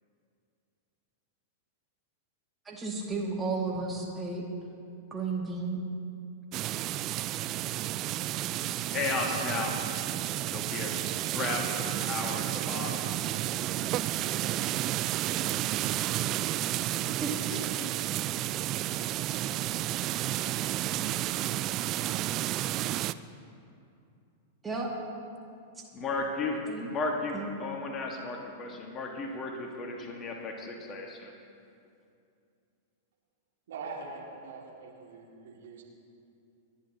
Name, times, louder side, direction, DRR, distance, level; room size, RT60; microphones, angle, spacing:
voice 1, 2.7-4.4 5.1-5.8 17.2-17.6 24.6-24.9 25.8-25.9 26.7-26.9 27.3-27.5, right 3 dB, 10° right, -1 dB, 2.2 m, -33 dB
sound 1, 6.5-23.1, right 14 dB, 35° right, 0.3 m, -31 dB
voice 2, 8.6-9.8 10.5-11.0 11.3-13.1 25.9-26.6 26.9-31.4, left 3 dB, 25° left, 2 dB, 1.7 m, -34 dB
voice 3, 33.7-35.8, right 4 dB, 60° right, -1 dB, 2.3 m, -43 dB
29.0 x 11.0 x 2.9 m, 2.5 s
figure-of-eight pair, 95°, 0 cm